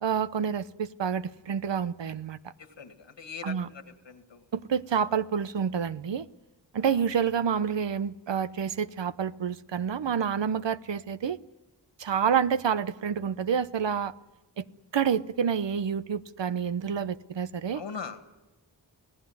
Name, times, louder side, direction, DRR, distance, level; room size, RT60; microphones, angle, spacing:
voice 1, 0.0-2.4 3.4-3.7 4.5-6.3 6.7-11.4 12.0-14.1 14.6-14.7 14.9-17.8, right 7 dB, 75° right, 0.9 m, -28 dB
voice 2, 2.6-4.4 6.9-7.0 17.7-18.2, left 6 dB, 85° left, 2.3 m, -41 dB
27.0 x 17.5 x 9.6 m
cardioid pair, 45°, 43 cm